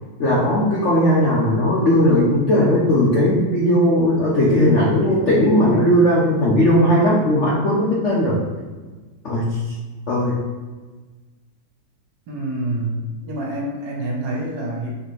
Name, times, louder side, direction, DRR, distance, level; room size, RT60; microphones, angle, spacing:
voice 1, 0.2-8.4 9.2-9.7 10.1-10.5, equal, 65° left, -6 dB, 0.7 m, -17 dB
voice 2, 12.3-14.9, right 1 dB, 65° right, -3 dB, 1.6 m, -27 dB
4.0 x 3.3 x 3.1 m, 1.3 s
omnidirectional pair, 2.2 m